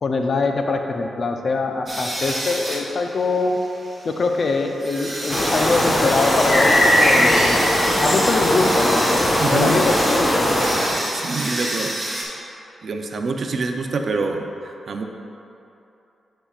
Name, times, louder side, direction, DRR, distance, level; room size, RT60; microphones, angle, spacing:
voice 1, 0.0-3.6 4.0-7.6 8.0-9.0 9.5-10.6, left 3 dB, 55° left, 4 dB, 0.6 m, -23 dB
sound 1, 1.9-12.2, right 1 dB, 25° right, 1.5 m, -29 dB
sound 2, 5.3-10.9, left 1 dB, 25° left, 1.3 m, -19 dB
voice 2, 9.4-9.8 11.1-11.9 12.8-15.0, right 3 dB, 60° right, 4 dB, 0.6 m, -26 dB
9.9 x 5.6 x 2.4 m, 2.8 s
cardioid pair, 55°, 0 cm